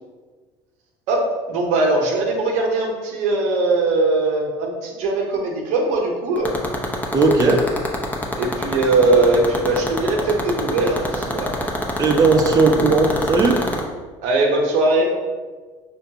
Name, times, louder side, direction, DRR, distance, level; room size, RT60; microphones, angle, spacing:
voice 1, 1.1-6.5 8.4-11.5 14.2-15.1, right 2 dB, 70° right, 1 dB, 0.8 m, -20 dB
sound 1, 6.4-13.8, left 1 dB, 15° left, 0.7 m, -23 dB
voice 2, 7.1-7.7 12.0-13.6, right 3 dB, 30° right, 1 dB, 0.5 m, -16 dB
5.2 x 2.3 x 2.8 m, 1.4 s
supercardioid pair, 85°, 12 cm